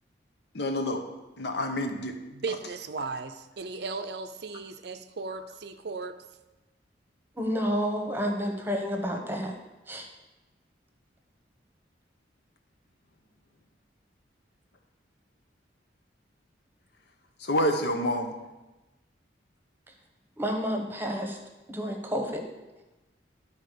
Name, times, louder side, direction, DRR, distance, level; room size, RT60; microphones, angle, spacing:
voice 1, 0.5-1.0 1.4-2.2 17.4-18.3, left 1 dB, 60° left, 5 dB, 1.0 m, -28 dB
voice 2, 2.3-6.2, right 4 dB, 60° right, 9 dB, 0.6 m, -36 dB
voice 3, 7.4-9.5 9.9-10.1 20.4-21.4 21.7-22.4, equal, 10° right, 3 dB, 1.1 m, -30 dB
11.0 x 4.4 x 6.6 m, 1.1 s
head